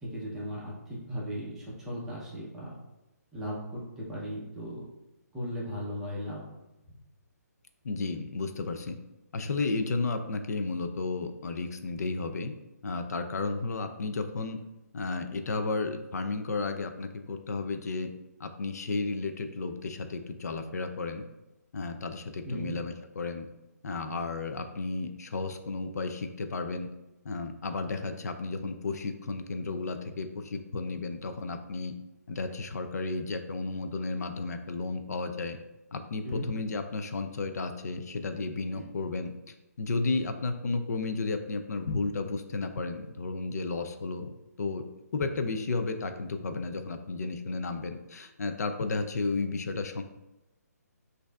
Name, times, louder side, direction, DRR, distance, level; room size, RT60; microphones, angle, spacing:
voice 1, 0.0-2.8 3.3-4.9 5.3-6.4 22.4-22.7 36.2-36.5 38.7-38.8, equal, 5° right, -6 dB, 0.6 m, -37 dB
voice 2, 7.8-9.0 9.3-12.5 12.8-14.6 14.9-18.1 18.4-21.2 21.7-23.5 23.8-26.9 27.2-31.9 32.3-35.6 35.9-44.3 44.6-44.8 45.1-50.0, left 3 dB, 70° left, 7 dB, 0.4 m, -33 dB
6.2 x 2.6 x 2.3 m, 0.97 s
hypercardioid pair, 160°, 9 cm